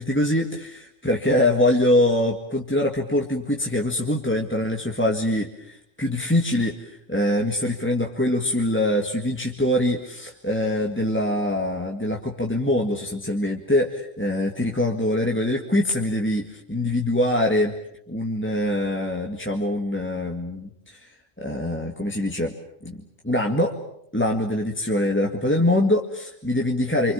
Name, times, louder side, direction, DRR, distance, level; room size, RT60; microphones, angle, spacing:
voice 1, 0.0-17.7 18.1-21.0 21.4-22.5 22.8-23.8 24.1-27.1, left 1 dB, 10° left, 1 dB, 1.9 m, -24 dB
28.0 x 25.5 x 7.2 m, 0.75 s
omnidirectional pair, 1.3 m